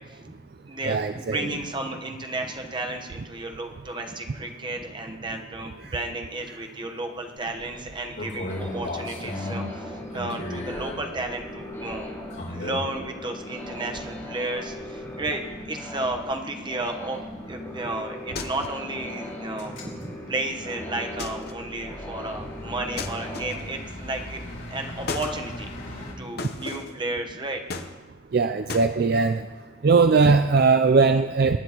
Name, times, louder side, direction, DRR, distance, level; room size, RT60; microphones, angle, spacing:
voice 1, 0.1-0.4 0.7-12.1 12.5-15.4 15.7-17.2 17.5-24.4 24.7-25.7 25.9-27.6, right 2 dB, 25° right, 3 dB, 1.1 m, -33 dB
voice 2, 0.9-1.4 28.3-29.5 29.8-31.6, right 4 dB, 55° right, 9 dB, 0.4 m, -19 dB
sound 1, 7.4-13.1 13.6-14.2 14.6-26.1, left 1 dB, 85° left, 3.4 m, -39 dB
sound 2, 8.5-23.4, left 1 dB, 15° left, 4.8 m, -39 dB
sound 3, 18.4-18.9 21.2-21.7 23.0-23.8 25.1-25.4 26.4-27.0 27.7-28.3 28.7-28.9, left 3 dB, 55° left, 0.9 m, -35 dB
23.0 x 9.8 x 3.0 m, 1.2 s
head